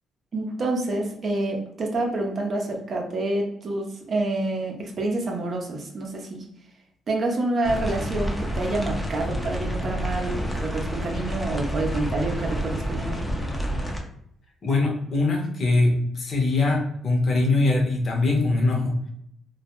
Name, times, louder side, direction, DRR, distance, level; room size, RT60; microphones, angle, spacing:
voice 1, 0.3-6.4 7.1-13.3, right 2 dB, 50° right, 1 dB, 0.5 m, -28 dB
sound 1, 7.6-14.0, equal, 10° left, 0.5 m, -29 dB
voice 2, 14.6-19.1, left 2 dB, 50° left, 1 dB, 0.7 m, -22 dB
2.2 x 2.1 x 2.9 m, 0.70 s
cardioid pair, 90°, 0 cm